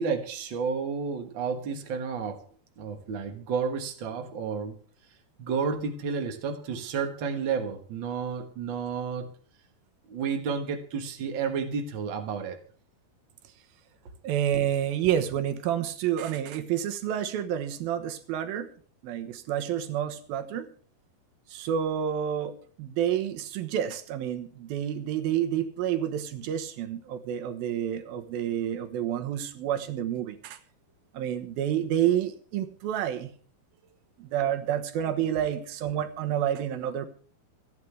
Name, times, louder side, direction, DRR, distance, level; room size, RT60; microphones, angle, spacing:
voice 1, 0.0-2.4 2.8-4.7 5.4-9.3 10.1-12.6, right 5 dB, 90° right, 5 dB, 1.0 m, -31 dB
voice 2, 14.2-18.7 19.0-20.7 21.5-30.6 31.1-33.3 34.2-37.1, right 10 dB, 70° right, 8 dB, 2.8 m, -29 dB
26.5 x 9.5 x 3.4 m, 0.43 s
omnidirectional pair, 4.7 m